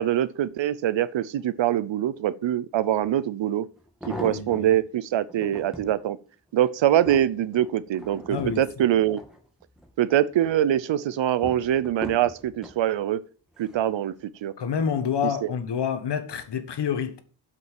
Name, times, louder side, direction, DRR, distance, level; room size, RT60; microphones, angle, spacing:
voice 1, 0.0-3.7 4.1-6.2 6.5-9.2 10.0-13.2 13.6-14.1 14.4-14.5 15.2-15.5, right 11 dB, 90° right, 0.7 m, -24 dB
sound 1, 3.0-3.1 3.8-4.8 5.3-5.9 6.5-9.9 10.3-10.8 11.4-12.8 13.5-13.9 14.2-14.3, equal, ahead, 2.3 m, -40 dB
voice 2, 4.1-4.7 8.3-8.7 14.6-17.2, left 7 dB, 65° left, 1.6 m, -28 dB
8.0 x 5.9 x 7.5 m
wide cardioid pair, 130°, 43 cm